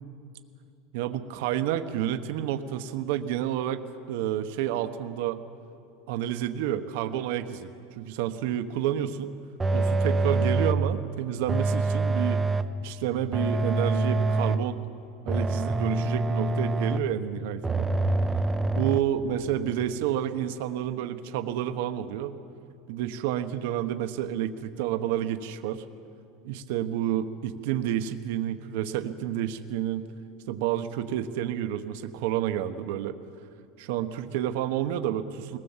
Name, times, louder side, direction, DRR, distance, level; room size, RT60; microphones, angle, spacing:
voice 1, 0.9-3.8 4.1-5.4 6.1-7.7 8.0-9.3 9.7-12.4 12.8-14.8 15.2-17.9 18.7-22.4 22.9-25.8 26.4-30.1 30.5-33.1 33.8-35.6, right 11 dB, 65° right, 8 dB, 1.0 m, -29 dB
sound 1, 9.6-10.9 11.5-12.8 13.3-14.8 15.3-17.2 17.6-19.0, right 2 dB, 10° right, 0.6 m, -26 dB
21.0 x 18.5 x 7.3 m, 2.6 s
supercardioid pair, 155°, 0 cm